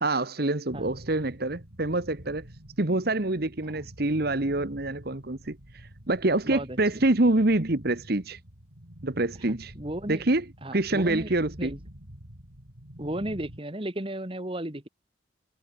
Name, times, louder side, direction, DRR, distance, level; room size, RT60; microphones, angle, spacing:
voice 1, 0.0-2.5 2.8-5.6 6.1-8.4 9.0-9.7 10.1-10.5 10.7-11.7, right 2 dB, 50° right, 1.3 m, -26 dB
sound 1, 0.7-13.6, equal, 70° right, 4.6 m, -47 dB
voice 2, 6.5-7.0 9.5-10.2 10.6-11.3 11.6-11.8 13.0-14.9, right 1 dB, 25° right, 1.8 m, -34 dB
head